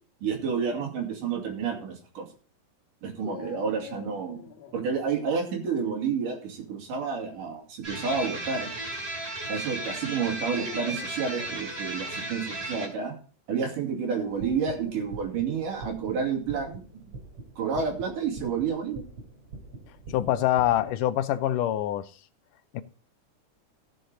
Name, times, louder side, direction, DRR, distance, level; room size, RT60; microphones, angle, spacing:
voice 1, 0.2-2.3 3.0-4.4 4.7-8.7 9.5-13.1 13.5-17.0 17.6-19.0, right 6 dB, 85° right, 4.0 m, -30 dB
Dog, 3.2-4.9 6.9-7.4 8.2-8.3 10.5-11.7 14.2-15.2, left 7 dB, 55° left, 3.0 m, -45 dB
sound 1, 7.8-12.9, right 2 dB, 20° right, 2.5 m, -35 dB
sound 2, 14.2-20.8, right 3 dB, 50° right, 3.4 m, -45 dB
voice 2, 20.1-22.1 22.7-22.8, left 12 dB, 80° left, 2.2 m, -25 dB
15.5 x 6.7 x 3.8 m
omnidirectional pair, 3.7 m